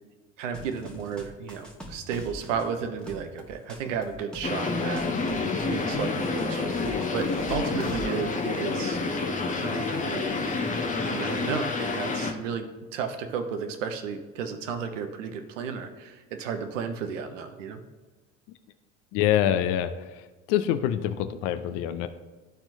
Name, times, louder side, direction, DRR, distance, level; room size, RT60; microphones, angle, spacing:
voice 1, 0.4-5.1 5.6-9.0 9.5-10.7 11.1-12.7 12.9-17.8, right 6 dB, 70° right, 7 dB, 0.8 m, -33 dB
sound 1, 0.5-8.1, equal, ahead, 1.3 m, -42 dB
sound 2, 4.4-12.3, left 3 dB, 20° left, 0.9 m, -28 dB
voice 2, 19.1-19.9 20.5-22.1, left 11 dB, 50° left, 10 dB, 0.6 m, -25 dB
12.5 x 4.3 x 2.7 m, 1.3 s
figure-of-eight pair, 65°, 39 cm